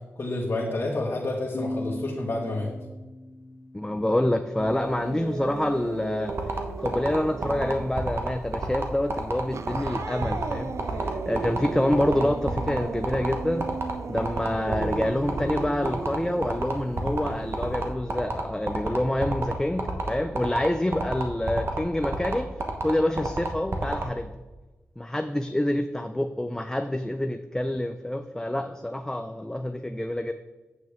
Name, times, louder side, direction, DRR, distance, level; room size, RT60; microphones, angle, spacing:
voice 1, 0.1-2.7, left 2 dB, 55° left, -4 dB, 1.5 m, -29 dB
sound 1, 1.5-5.0, left 1 dB, 70° left, 0.9 m, -38 dB
voice 2, 3.7-6.4 6.8-10.7 11.0-13.7 14.1-22.5 22.8-24.3 25.0-30.3, left 1 dB, 10° left, 7 dB, 0.5 m, -27 dB
sound 2, 4.6-18.0, right 4 dB, 70° right, 0.5 m, -36 dB
sound 3, 6.3-24.0, right 2 dB, 55° right, 1.2 m, -29 dB
8.2 x 6.9 x 3.6 m, 1.1 s
cardioid pair, 55°, 5 cm